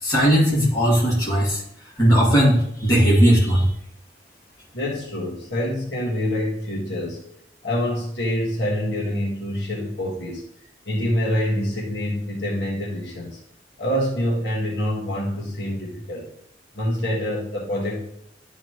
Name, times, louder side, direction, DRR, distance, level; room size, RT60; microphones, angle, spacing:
voice 1, 0.0-1.6 2.0-3.7, equal, 20° left, -7 dB, 2.5 m, -17 dB
voice 2, 4.7-7.2 7.6-10.4 10.8-13.4 13.8-16.3 16.7-18.0, equal, 75° left, -4 dB, 1.6 m, -26 dB
10.5 x 4.0 x 3.0 m, 0.71 s
head